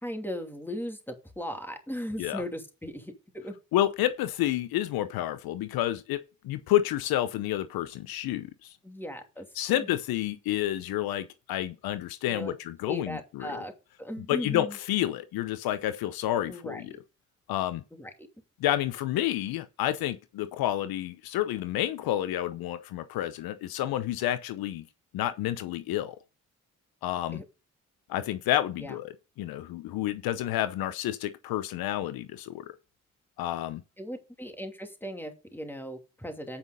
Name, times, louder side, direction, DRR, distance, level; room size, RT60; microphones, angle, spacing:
voice 1, 0.0-3.5 8.8-9.9 12.3-12.5 12.9-13.7 14.0-14.8 16.5-17.0 17.9-18.1 27.3-27.4 28.8-29.0 34.0-36.6, equal, 5° left, 2.7 m, -38 dB
voice 2, 3.7-6.2 6.4-8.7 9.6-13.6 14.3-16.9 17.5-17.8 18.6-24.8 25.1-26.2 27.0-27.4 28.1-32.7 33.4-33.8, left 13 dB, 85° left, 0.7 m, -30 dB
8.8 x 5.4 x 5.2 m
supercardioid pair, 50°, 35 cm